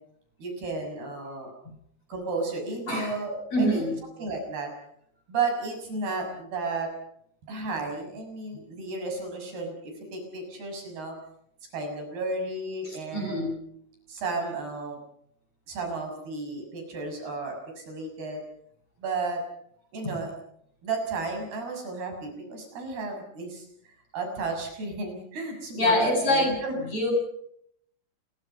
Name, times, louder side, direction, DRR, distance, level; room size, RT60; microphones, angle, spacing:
voice 1, 0.4-1.5 2.1-3.8 4.2-4.7 5.3-6.9 7.5-11.1 11.7-13.5 14.1-15.0 15.7-18.4 19.0-19.4 19.9-20.3 20.8-23.6 24.1-26.8, right 3 dB, 60° right, 3 dB, 8.5 m, -33 dB
voice 2, 3.5-4.0 12.8-13.5 20.0-20.1 25.7-27.1, left 1 dB, 35° left, 3 dB, 8.5 m, -25 dB
29.0 x 23.0 x 5.6 m, 0.70 s
omnidirectional pair, 5.2 m